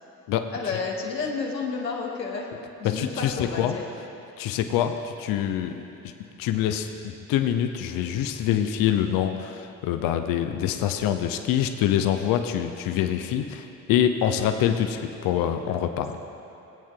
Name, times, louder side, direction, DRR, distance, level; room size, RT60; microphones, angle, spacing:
voice 1, 0.5-3.9, left 4 dB, 85° left, 0 dB, 1.0 m, -31 dB
voice 2, 2.9-3.7 4.4-5.7 6.4-16.2, left 10 dB, 45° left, 7 dB, 0.6 m, -25 dB
21.5 x 8.6 x 2.3 m, 2.9 s
figure-of-eight pair, 50°, 49 cm